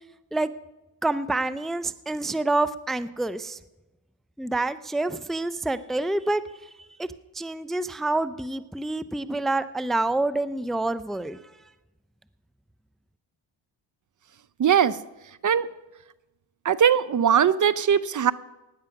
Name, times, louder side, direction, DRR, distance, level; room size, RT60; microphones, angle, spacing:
voice 1, 1.0-3.6 4.4-6.4 7.0-7.1 7.3-11.4, right 2 dB, ahead, 15 dB, 0.5 m, -27 dB
voice 2, 14.6-15.0 15.4-15.7 16.6-18.3, right 8 dB, 40° right, 17 dB, 0.6 m, -20 dB
16.0 x 10.0 x 5.9 m, 1.0 s
cardioid pair, 65°, 45 cm